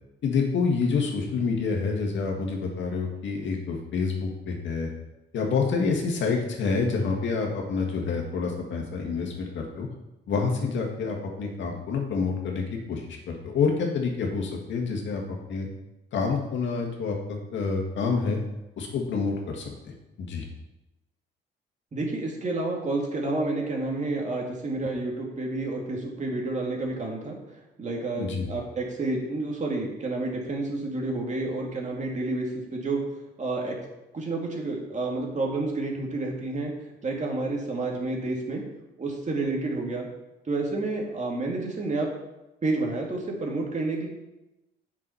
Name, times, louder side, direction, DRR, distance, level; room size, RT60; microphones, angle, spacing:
voice 1, 0.2-4.9 5.3-9.9 10.3-15.2 15.5-15.7 16.1-18.4 18.8-20.4 28.2-28.5, left 4 dB, 70° left, 1 dB, 2.0 m, -28 dB
voice 2, 21.9-27.4 27.8-33.0 33.4-33.8 34.1-36.7 37.0-38.6 39.0-40.1 40.5-42.1 42.6-44.1, right 2 dB, 35° right, 0 dB, 2.3 m, -29 dB
7.6 x 6.2 x 5.7 m, 0.97 s
cardioid pair, 90°, 20 cm